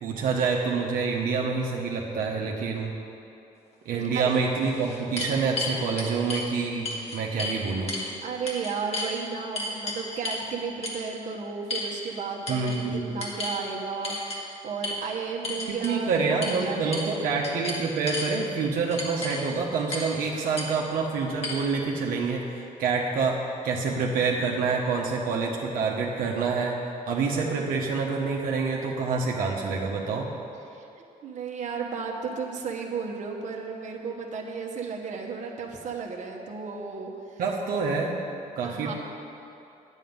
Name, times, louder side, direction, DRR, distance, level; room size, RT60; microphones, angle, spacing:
voice 1, 0.0-2.9 3.8-7.9 12.5-13.2 15.7-26.8 27.1-30.3 37.4-38.2 38.6-38.9, right 4 dB, 80° right, -2 dB, 1.1 m, -27 dB
sound 1, 3.9-4.0 4.6-6.5 6.8-7.6 7.9-8.1 8.5-9.1 9.5-10.4 10.8-11.0 11.7-12.2 12.5-12.8 13.2-13.6 14.0-14.4 14.8-15.0 15.4-15.9 16.4-16.6 16.9-17.1 17.4-18.3 18.9-19.4 19.9-20.1 20.6-20.7 21.4-21.5, left 2 dB, 45° left, 1.9 m, -33 dB
voice 2, 3.9-4.3 8.2-17.2 30.7-30.8 31.2-37.4 38.6-38.9, right 5 dB, 55° right, 0 dB, 1.2 m, -34 dB
9.4 x 8.4 x 5.4 m, 2.8 s
cardioid pair, 100°, 15 cm